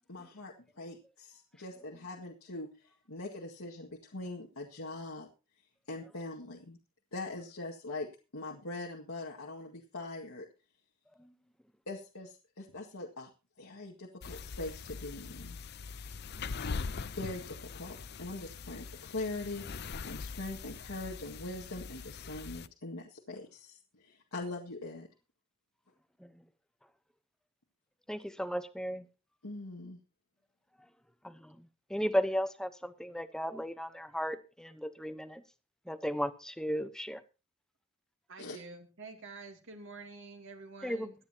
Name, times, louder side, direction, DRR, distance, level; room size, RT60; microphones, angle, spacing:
voice 1, 0.1-5.3 5.9-6.8 7.1-10.5 11.9-13.3 13.6-15.6 17.1-25.1 29.4-30.0 38.4-38.6, left 2 dB, 90° left, 2.0 m, -42 dB
sound 1, 14.2-22.7, left 5 dB, 50° left, 0.7 m, -42 dB
voice 2, 28.1-29.1 31.2-35.4 35.9-37.2 40.8-41.1, equal, 5° left, 0.9 m, -35 dB
voice 3, 38.3-41.1, right 3 dB, 60° right, 2.7 m, -48 dB
24.0 x 9.6 x 2.9 m
head